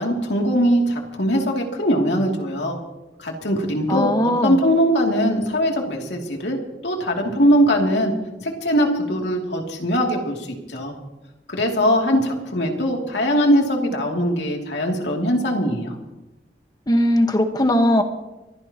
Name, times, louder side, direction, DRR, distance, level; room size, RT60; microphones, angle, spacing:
voice 1, 0.0-2.8 3.2-4.1 4.4-6.6 6.8-8.1 8.4-11.0 11.5-15.9, equal, 85° left, 1 dB, 2.8 m, -21 dB
voice 2, 3.9-4.6 16.9-18.0, left 1 dB, 25° left, 6 dB, 1.4 m, -19 dB
24.0 x 15.5 x 3.0 m, 1.0 s
head